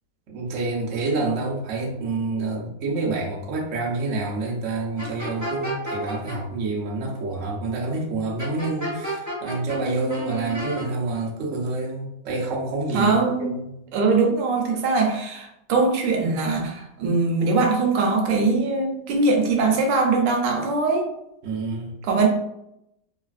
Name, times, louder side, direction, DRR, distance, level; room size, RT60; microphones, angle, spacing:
voice 1, 0.3-13.7 21.4-21.9, right 3 dB, 60° right, -2 dB, 0.9 m, -28 dB
sound 1, 5.0-6.4 8.4-9.8 10.1-10.9, right 1 dB, 10° right, 1.0 m, -31 dB
voice 2, 12.9-13.5 13.9-21.1 22.0-22.3, right 3 dB, 90° right, 2 dB, 1.3 m, -21 dB
3.2 x 2.3 x 2.4 m, 0.82 s
omnidirectional pair, 1.9 m